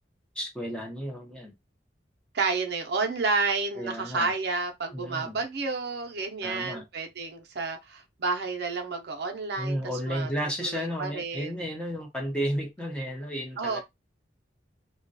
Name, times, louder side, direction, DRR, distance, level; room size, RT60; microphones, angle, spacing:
voice 1, 0.4-1.5 3.7-4.3 4.9-5.4 6.4-6.8 9.6-13.8, equal, 5° left, 0.6 m, -33 dB
voice 2, 2.3-10.3 10.6-11.5 13.6-13.8, right 4 dB, 65° right, 0.5 m, -30 dB
2.3 x 2.2 x 2.6 m
head